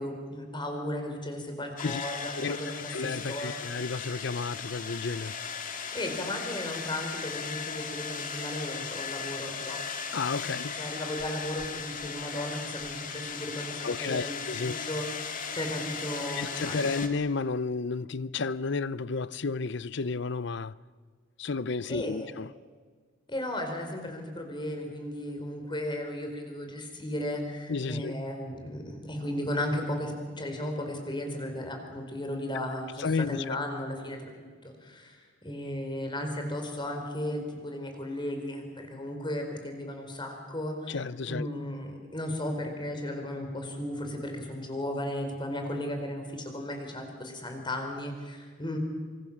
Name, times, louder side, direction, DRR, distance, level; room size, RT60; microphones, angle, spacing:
voice 1, 0.0-3.6 5.9-9.8 10.6-17.0 21.8-22.3 23.3-48.8, left 1 dB, 25° left, 4.6 m, -35 dB
sound 1, 1.8-17.1, left 6 dB, 45° left, 2.1 m, -37 dB
voice 2, 2.9-5.4 10.1-10.7 13.8-14.8 16.3-20.8 21.4-22.5 27.7-28.1 33.0-33.6 40.9-41.5, left 4 dB, 65° left, 0.7 m, -32 dB
26.0 x 25.5 x 7.4 m
head